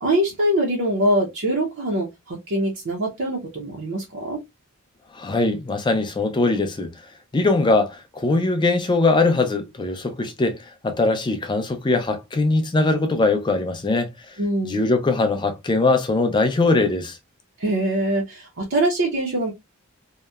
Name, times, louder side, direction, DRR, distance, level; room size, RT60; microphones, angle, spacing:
voice 1, 0.0-4.4 14.4-14.8 17.6-19.5, right 1 dB, 60° right, 0.6 m, -23 dB
voice 2, 5.1-6.9 7.3-14.1 14.6-17.2, left 3 dB, 20° left, 0.4 m, -21 dB
2.8 x 2.0 x 2.2 m
head